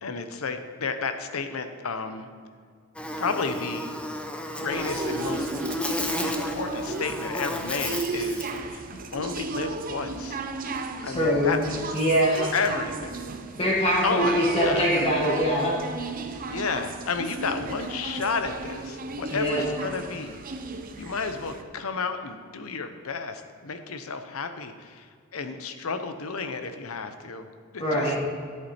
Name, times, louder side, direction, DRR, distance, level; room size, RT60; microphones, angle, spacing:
voice 1, 0.0-2.3 3.2-3.9 4.5-5.5 6.2-10.4 11.0-11.9 12.5-13.2 14.0-14.9 16.5-20.4 21.0-27.5 27.7-28.1, left 4 dB, 85° left, 8 dB, 0.8 m, -32 dB
Buzz, 3.0-8.6, left 1 dB, 5° left, 0.6 m, -32 dB
sound 1, 4.7-21.6, right 3 dB, 40° right, 0.7 m, -34 dB
voice 2, 11.0-11.6 11.9-12.5 13.6-15.8 19.3-19.6 27.8-28.2, equal, 30° left, -5 dB, 1.6 m, -23 dB
11.0 x 8.5 x 4.3 m, 2.1 s
head